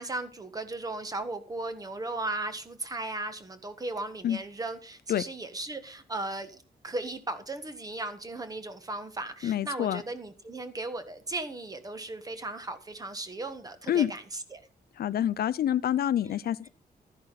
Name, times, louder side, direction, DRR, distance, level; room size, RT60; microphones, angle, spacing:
voice 1, 0.0-14.6 16.3-16.7, right 2 dB, 20° right, 1.4 m, -36 dB
voice 2, 9.4-10.0 13.9-14.1 15.0-16.7, left 10 dB, 70° left, 0.5 m, -27 dB
12.5 x 10.5 x 4.1 m
wide cardioid pair, 170°, 17 cm